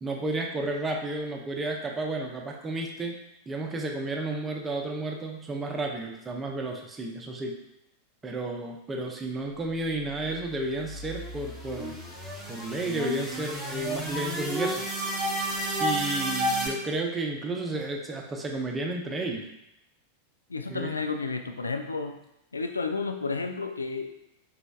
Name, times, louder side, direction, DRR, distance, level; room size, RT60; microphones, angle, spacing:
voice 1, 0.0-3.2 3.5-7.6 8.2-12.0 12.5-14.9 15.8-19.5 20.7-20.9, right 2 dB, 15° right, 1 dB, 0.6 m, -32 dB
sound 1, 10.3-16.7, equal, 5° left, 1.0 m, -32 dB
voice 2, 20.5-22.2 22.5-24.2, left 4 dB, 75° left, 6 dB, 0.4 m, -31 dB
5.0 x 3.4 x 2.3 m, 0.85 s
figure-of-eight pair, 90°, 0 cm